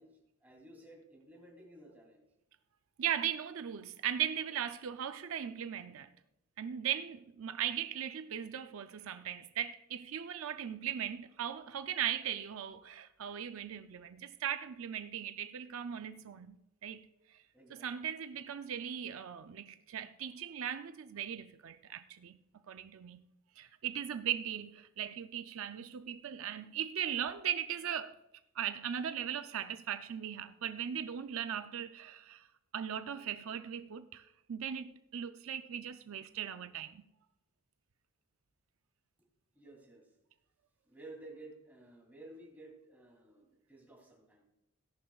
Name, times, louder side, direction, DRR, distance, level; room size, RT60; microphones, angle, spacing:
voice 1, 0.0-2.2 17.5-18.1 39.2-39.3 39.5-40.1 40.8-44.4, right 2 dB, 10° right, 2.9 m, -54 dB
voice 2, 3.0-6.1 6.6-16.6 16.8-17.4 17.7-22.4 22.7-23.2 23.6-28.2 28.6-32.5 32.7-37.0, right 9 dB, 70° right, 0.4 m, -38 dB
17.0 x 11.0 x 2.3 m
head